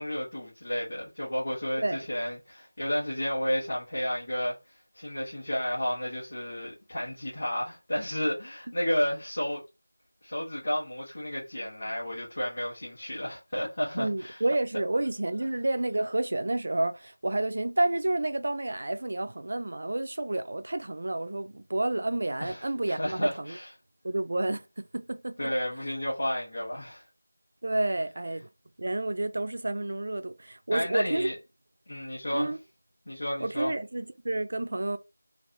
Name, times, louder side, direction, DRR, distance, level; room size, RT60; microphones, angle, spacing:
voice 1, 0.0-4.6 4.9-9.6 10.2-14.4 22.4-23.7 25.4-27.0 30.7-31.4 31.9-32.5 33.1-33.7, equal, 40° left, 1.8 m, -32 dB
voice 2, 14.0-23.6 24.0-25.5 27.6-28.5 28.8-31.3 32.3-32.6 33.4-35.0, right 2 dB, 35° right, 0.3 m, -30 dB
3.9 x 2.8 x 3.0 m
figure-of-eight pair, 180°, 0 cm